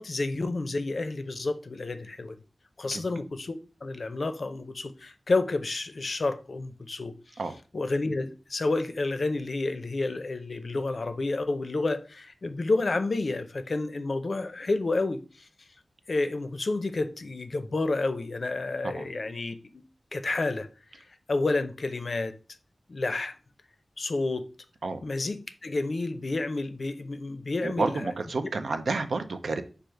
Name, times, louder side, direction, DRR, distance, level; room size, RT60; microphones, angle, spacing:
voice 1, 0.0-2.4 2.8-7.1 7.7-15.5 16.1-19.8 20.1-20.7 20.9-22.4 22.9-23.3 24.0-24.5 25.0-28.1, left 2 dB, 55° left, 0.5 m, -30 dB
voice 2, 27.6-29.6, right 3 dB, 75° right, 0.5 m, -30 dB
4.9 x 2.4 x 4.4 m
wide cardioid pair, 95°, 0 cm